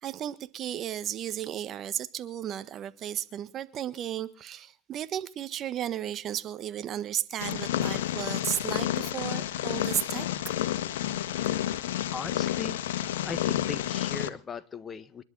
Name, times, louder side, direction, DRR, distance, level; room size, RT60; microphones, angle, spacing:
voice 1, 0.0-10.2, right 11 dB, 45° right, 1.5 m, -34 dB
Purr, 7.4-14.3, left 12 dB, 80° left, 1.4 m, -30 dB
voice 2, 11.7-15.2, left 5 dB, 30° left, 1.5 m, -39 dB
28.5 x 11.5 x 4.1 m
hypercardioid pair, 95°, 0 cm